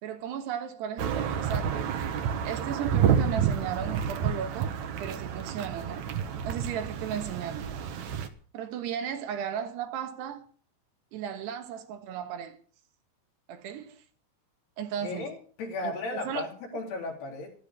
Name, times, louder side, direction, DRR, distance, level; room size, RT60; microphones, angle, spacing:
voice 1, 0.0-1.8 2.4-6.1 6.4-7.7 8.5-10.5 11.1-12.6 13.5-14.0 14.8-15.3 15.8-16.5, right 8 dB, 85° right, 3.5 m, -35 dB
sound 1, 1.0-8.3, right 8 dB, 65° right, 1.8 m, -29 dB
voice 2, 15.0-17.5, left 3 dB, 75° left, 5.5 m, -35 dB
14.0 x 13.0 x 5.2 m
omnidirectional pair, 4.7 m